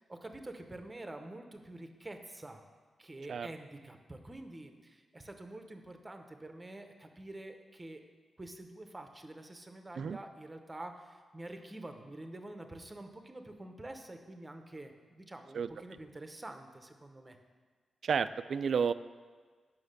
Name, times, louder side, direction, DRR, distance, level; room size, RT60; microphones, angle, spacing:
voice 1, 0.0-2.6 3.0-8.0 8.4-17.4, right 1 dB, 15° right, 6 dB, 0.8 m, -47 dB
voice 2, 18.0-18.9, right 6 dB, 60° right, 13 dB, 0.3 m, -31 dB
9.4 x 5.9 x 6.5 m, 1.5 s
wide cardioid pair, 150°, 0 cm